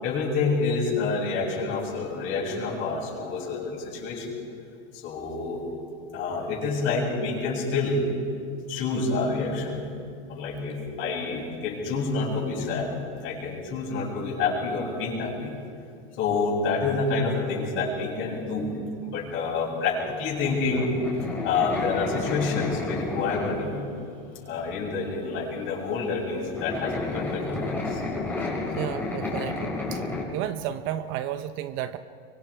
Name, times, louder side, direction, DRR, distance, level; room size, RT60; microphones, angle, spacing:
voice 1, 0.0-4.3 4.9-5.6 6.1-8.0 8.7-9.8 10.3-13.0 13.2-15.5 16.2-18.7 19.0-20.9 21.4-23.8 24.4-28.0, left 4 dB, 40° left, -2 dB, 7.5 m, -28 dB
sound 1, 20.4-23.9 24.4-24.5 25.7-25.8 26.0-30.2, left 3 dB, 5° left, 4.6 m, -31 dB
voice 2, 28.8-30.0 30.3-32.0, right 11 dB, 40° right, 11 dB, 0.8 m, -32 dB
25.0 x 24.5 x 4.9 m, 2.3 s
supercardioid pair, 140°, 31 cm